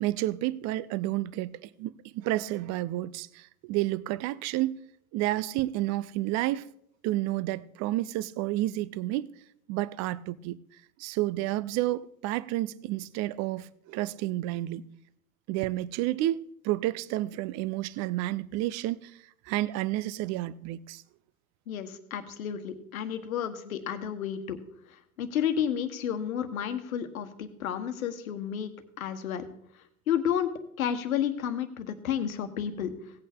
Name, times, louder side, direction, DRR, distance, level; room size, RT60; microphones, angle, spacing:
voice 1, 0.0-4.7 5.1-6.7 7.0-9.3 9.7-10.6 11.0-14.9 15.5-19.1 19.5-21.0, right 16 dB, 40° right, 0.5 m, -30 dB
voice 2, 21.7-24.6 24.9-28.7 29.0-29.4 30.1-32.9, left 9 dB, 75° left, 1.3 m, -31 dB
17.0 x 8.4 x 3.6 m
figure-of-eight pair, 80°, 42 cm